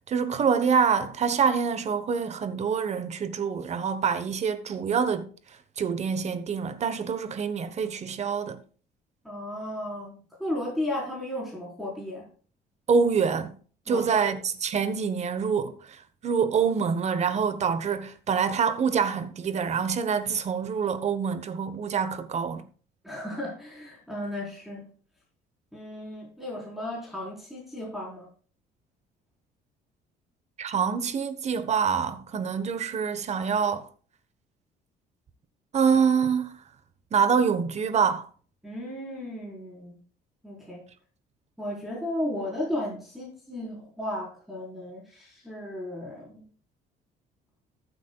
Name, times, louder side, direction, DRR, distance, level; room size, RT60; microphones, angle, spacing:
voice 1, 0.1-5.3 5.8-8.6 12.9-13.6 13.9-22.7 30.6-33.9 35.7-36.5 37.1-38.3, right 6 dB, 40° right, 1.2 m, -26 dB
voice 2, 9.2-12.3 13.9-14.3 23.0-24.9 25.7-28.3 38.6-40.0 40.4-40.8 41.6-46.4, left 1 dB, ahead, 4.5 m, -34 dB
14.5 x 8.4 x 2.4 m
cardioid pair, 110°, 17 cm